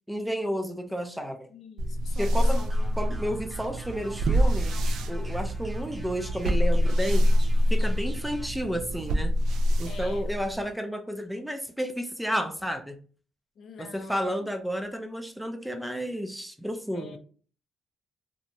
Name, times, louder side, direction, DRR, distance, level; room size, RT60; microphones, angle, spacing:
voice 1, 0.1-1.5 2.2-2.6 3.0-7.3 7.7-9.3 9.8-13.0 13.8-17.2, equal, 5° right, 0.4 m, -31 dB
voice 2, 1.5-2.9 3.5-3.6 9.8-10.3 13.6-14.5 16.9-17.2, left 5 dB, 60° left, 0.4 m, -46 dB
sound 1, 1.8-10.7, equal, 80° right, 0.3 m, -26 dB
sound 2, 2.3-8.5, right 1 dB, 25° right, 0.8 m, -45 dB
2.6 x 2.1 x 2.8 m
cardioid pair, 90°, 0 cm